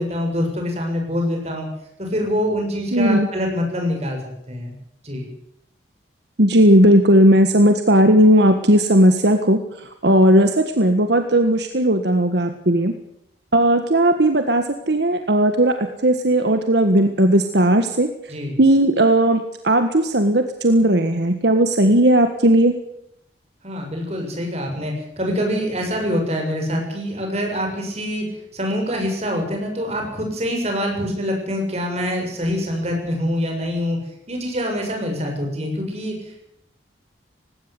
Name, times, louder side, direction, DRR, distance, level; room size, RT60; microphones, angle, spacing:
voice 1, 0.0-1.7 2.0-4.2 4.5-4.7 5.0-5.3 18.3-18.6 23.6-28.2 28.5-34.0 34.3-36.5, equal, 35° right, 2 dB, 6.9 m, -25 dB
voice 2, 2.9-3.3 6.4-12.9 13.5-18.3 18.6-22.7, right 1 dB, 65° right, 7 dB, 1.6 m, -16 dB
19.0 x 17.0 x 8.3 m, 0.80 s
head